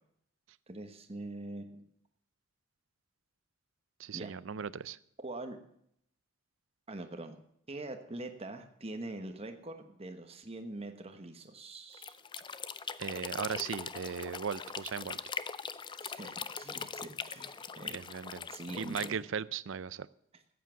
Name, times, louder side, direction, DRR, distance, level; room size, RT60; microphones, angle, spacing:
voice 1, 0.7-1.8 4.1-4.3 5.2-5.6 6.9-7.4 7.7-12.2 16.0-17.9 18.5-19.3 20.3-20.4, right 2 dB, 30° right, 6 dB, 1.2 m, -43 dB
voice 2, 4.0-5.0 13.0-15.2 17.9-18.5 18.7-20.1, right 6 dB, 70° right, 19 dB, 0.5 m, -37 dB
sound 1, 11.9-19.1, left 6 dB, 25° left, 0.4 m, -41 dB
14.0 x 8.5 x 7.0 m, 0.72 s
head